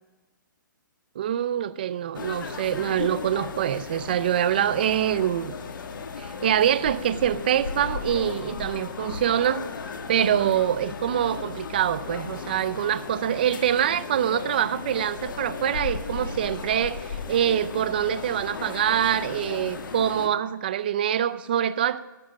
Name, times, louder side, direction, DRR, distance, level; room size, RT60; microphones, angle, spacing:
voice 1, 1.2-5.5 6.2-9.7 10.1-22.0, right 10 dB, 25° right, 15 dB, 0.4 m, -25 dB
sound 1, 2.1-20.3, left 5 dB, 70° left, 1.5 m, -35 dB
12.0 x 7.3 x 7.4 m, 1.2 s
hypercardioid pair, 175°, 11 cm